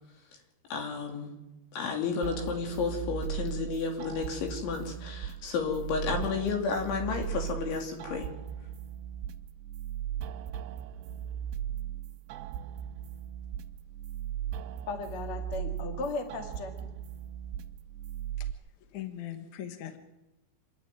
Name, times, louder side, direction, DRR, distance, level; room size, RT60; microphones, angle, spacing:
voice 1, 0.7-1.3 1.7-8.3, left 5 dB, 75° left, 2 dB, 5.2 m, -32 dB
sound 1, 2.2-18.5, right 10 dB, 75° right, 2.6 m, -38 dB
voice 2, 14.9-16.9, left 3 dB, 40° left, 4 dB, 2.3 m, -36 dB
voice 3, 18.9-20.0, left 11 dB, 60° left, 6 dB, 2.2 m, -40 dB
28.0 x 10.5 x 9.3 m, 1.0 s
omnidirectional pair, 5.5 m